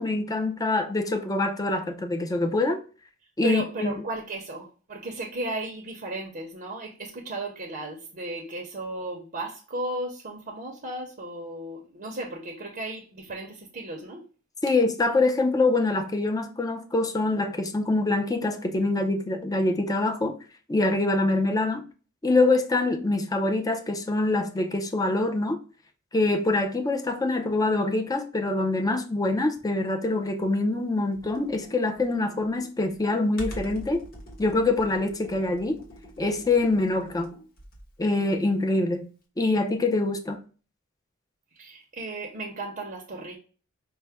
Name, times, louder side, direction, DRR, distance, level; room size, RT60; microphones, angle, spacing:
voice 1, 0.0-2.8 3.4-3.9 14.6-20.3 20.7-21.8 22.2-25.6 26.1-34.0 34.4-35.8 36.2-37.3 38.0-39.1 39.4-40.4, left 2 dB, 15° left, 0.5 m, -25 dB
voice 2, 3.4-14.2 41.6-43.4, right 2 dB, 45° right, 0.7 m, -35 dB
Computer keyboard, 31.1-38.0, equal, 45° left, 1.3 m, -44 dB
5.4 x 2.1 x 3.4 m
head